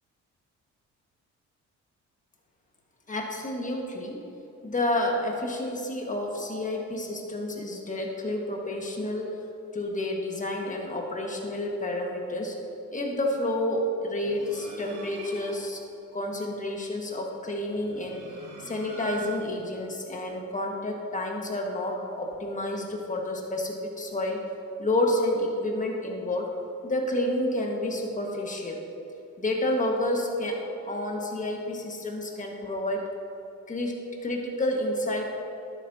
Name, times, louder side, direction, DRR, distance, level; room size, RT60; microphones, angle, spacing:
voice 1, 3.1-4.2 4.6-9.3 9.7-12.6 12.9-15.8 16.1-18.2 18.6-24.4 24.8-26.5 26.8-28.8 29.4-30.6 30.9-33.1 33.7-35.2, left 1 dB, 25° left, 0 dB, 1.6 m, -29 dB
sound 1, 14.2-15.8 17.7-19.7, right 3 dB, 80° right, 2.0 m, -42 dB
11.5 x 8.5 x 2.8 m, 2.9 s
cardioid pair, 90°, 30 cm